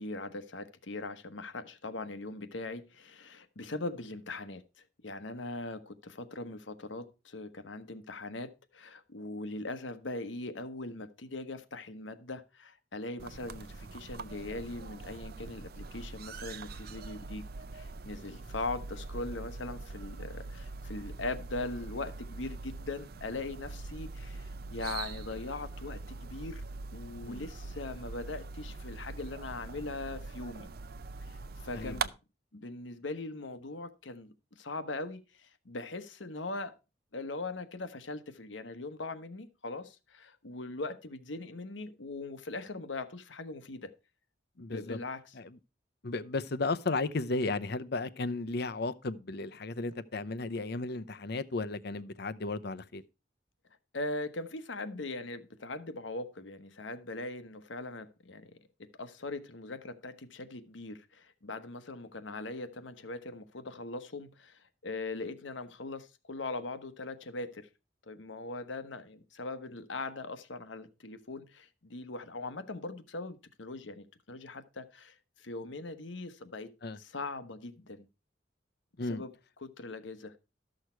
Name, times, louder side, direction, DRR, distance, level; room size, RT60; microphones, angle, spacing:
voice 1, 0.0-4.6 5.0-17.4 17.7-26.6 26.9-30.7 31.3-32.1 32.5-36.7 37.1-43.9 44.6-45.3 53.9-58.5 59.0-67.7 68.1-76.7 77.0-78.1 79.0-79.3 79.6-80.3, left 2 dB, 80° left, 1.2 m, -40 dB
sound 1, 13.2-32.1, right 3 dB, 55° right, 0.5 m, -43 dB
voice 2, 44.6-45.0 45.4-45.5 46.0-53.0 76.8-77.0 79.0-79.2, left 3 dB, 60° left, 0.7 m, -34 dB
13.0 x 6.5 x 4.5 m
head